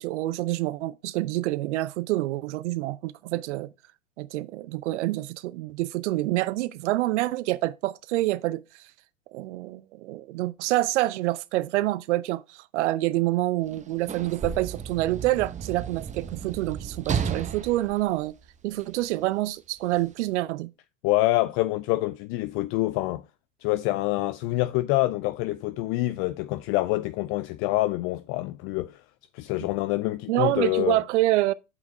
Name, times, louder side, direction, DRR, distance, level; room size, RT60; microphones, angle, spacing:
voice 1, 0.0-3.7 4.2-8.6 9.3-18.3 18.6-20.7 30.3-31.5, right 17 dB, 60° right, 0.8 m, -27 dB
Sliding door / Slam, 13.6-19.0 19.9-20.1, right 7 dB, 20° right, 0.9 m, -33 dB
voice 2, 21.0-23.2 23.6-29.0 29.3-31.0, left 18 dB, 35° left, 0.4 m, -26 dB
7.9 x 5.8 x 4.4 m
hypercardioid pair, 90°, 40 cm